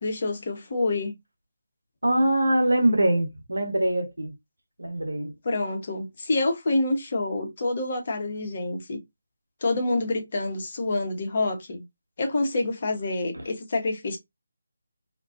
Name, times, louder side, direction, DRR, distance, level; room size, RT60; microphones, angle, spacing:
voice 1, 0.0-1.1 5.4-9.0 9.6-11.8 12.2-14.2, left 2 dB, 45° left, 0.8 m, -27 dB
voice 2, 2.0-4.3 4.8-5.3 13.3-13.4, right 1 dB, 80° right, 0.8 m, -23 dB
2.4 x 2.2 x 2.4 m
figure-of-eight pair, 155°, 0 cm